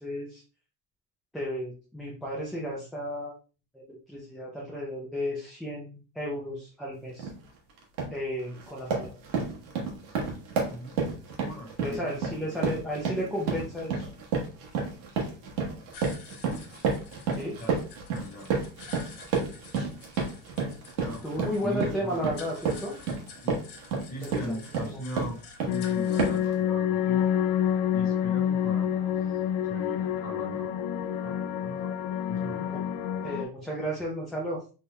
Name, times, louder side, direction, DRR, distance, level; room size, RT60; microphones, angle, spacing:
voice 1, 0.0-0.4 1.3-3.3 3.7-7.3 8.1-9.1 11.8-14.1 17.3-17.6 19.7-19.9 21.2-23.0 24.3-25.0 32.6-32.8 33.2-34.6, equal, ahead, -5 dB, 0.4 m, -33 dB
sound 1, 7.2-7.4 7.8-8.2 8.6-25.8 26.2-26.5, right 5 dB, 85° right, 1.3 m, -31 dB
voice 2, 10.7-11.1 11.3-12.8 17.6-17.8 18.1-18.5 21.0-22.3 23.4-23.6 24.1-27.3 27.9-29.1 29.6-30.8 31.2-31.9 32.3-32.7, equal, 20° left, -1 dB, 1.2 m, -40 dB
sound 2, 15.9-26.4, left 5 dB, 70° left, 1.1 m, -50 dB
sound 3, 25.7-33.4, left 9 dB, 85° left, 0.5 m, -28 dB
4.1 x 3.4 x 2.2 m, 0.35 s
cardioid pair, 170°, 42 cm